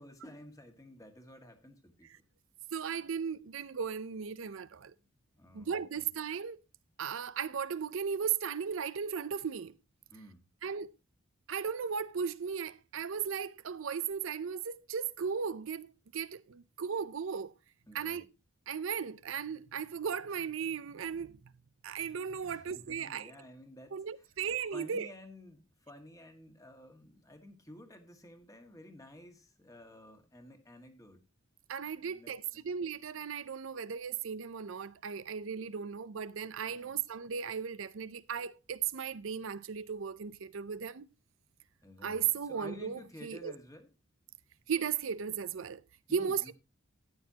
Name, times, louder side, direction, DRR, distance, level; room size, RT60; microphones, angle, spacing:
voice 1, 0.0-2.1 5.3-6.1 10.1-10.4 17.9-18.2 22.4-24.0 24.7-31.2 32.0-32.6 36.7-36.9 41.8-43.9 46.1-46.5, left 1 dB, 15° left, 1.9 m, -52 dB
voice 2, 2.7-4.9 5.5-6.6 7.0-9.7 10.6-10.9 11.5-17.5 17.9-18.2 18.7-21.4 21.8-23.3 23.9-25.1 31.7-41.1 42.0-43.5 44.7-45.8 46.1-46.5, right 7 dB, 70° right, 0.5 m, -36 dB
13.5 x 9.6 x 2.8 m
head